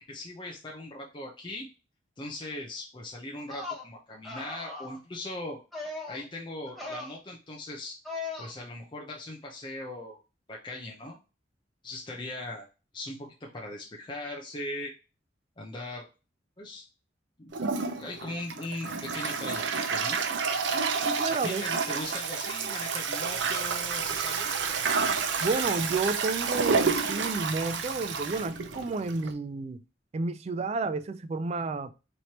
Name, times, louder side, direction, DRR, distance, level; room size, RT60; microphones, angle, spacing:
voice 1, 0.1-1.7 2.2-5.6 6.1-8.0 8.4-10.2 10.5-11.2 11.8-12.7 12.9-14.9 15.6-16.1 16.6-16.8 17.4-17.5 18.0-20.2 21.3-24.5, left 1 dB, 25° left, 0.7 m, -39 dB
sound 1, 3.4-3.8 4.2-5.0 5.7-6.2 6.7-7.1 8.0-8.5, left 3 dB, ahead, 1.3 m, -38 dB
Toilet flush, 17.5-29.3, right 5 dB, 70° right, 0.6 m, -30 dB
voice 2, 21.1-21.7 25.4-29.8 30.1-31.9, right 3 dB, 35° right, 0.3 m, -31 dB
sound 2, 23.3-28.9, equal, 70° left, 0.7 m, -52 dB
4.4 x 3.2 x 2.9 m
head